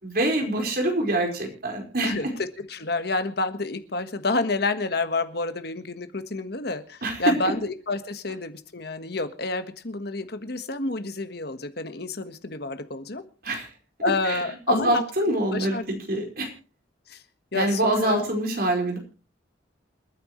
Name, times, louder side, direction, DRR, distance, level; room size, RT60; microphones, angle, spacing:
voice 1, 0.0-2.1 7.0-7.3 13.4-13.7 14.2-14.4 14.7-16.5 17.5-19.0, right 1 dB, 55° right, 2 dB, 4.8 m, -25 dB
voice 2, 2.6-13.2 14.0-15.0 15.5-15.8 17.1-17.2 17.5-18.3, left 2 dB, 55° left, 9 dB, 1.5 m, -29 dB
28.5 x 9.7 x 3.1 m, 0.34 s
head